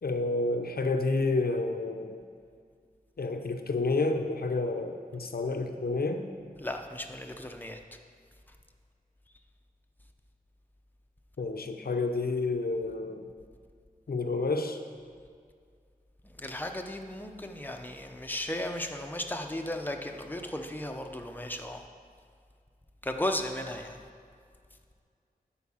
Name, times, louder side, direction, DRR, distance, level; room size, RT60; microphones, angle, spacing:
voice 1, 0.0-2.2 3.2-6.2 11.4-13.3 14.1-14.8, left 3 dB, 80° left, 5 dB, 0.8 m, -29 dB
voice 2, 6.6-7.8 16.4-21.8 23.0-24.0, left 1 dB, 10° left, 4 dB, 0.8 m, -35 dB
11.0 x 4.6 x 7.2 m, 2.1 s
wide cardioid pair, 75°, 15 cm